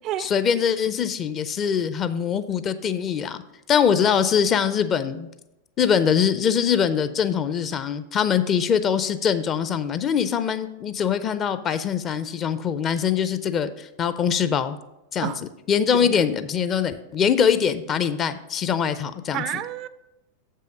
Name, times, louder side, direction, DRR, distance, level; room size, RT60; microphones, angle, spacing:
voice 1, 0.2-3.4 3.7-5.3 5.8-14.8 15.1-15.3 15.7-19.4, left 7 dB, 30° left, 12 dB, 0.5 m, -23 dB
voice 2, 15.9-16.3 19.3-19.9, right 11 dB, 35° right, 14 dB, 0.3 m, -30 dB
7.5 x 5.6 x 5.0 m, 0.91 s
figure-of-eight pair, 90°, 0 cm